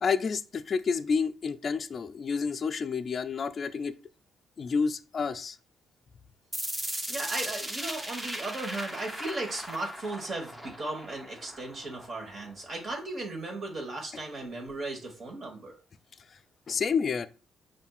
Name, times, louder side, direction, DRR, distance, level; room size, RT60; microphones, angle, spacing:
voice 1, 0.0-3.9 4.6-5.6 16.7-17.3, left 5 dB, 45° left, 0.3 m, -29 dB
sound 1, 6.5-12.5, right 1 dB, 15° right, 0.8 m, -38 dB
voice 2, 7.1-15.7, right 2 dB, 45° right, 1.3 m, -36 dB
5.3 x 2.6 x 2.4 m
cardioid pair, 90°, 0 cm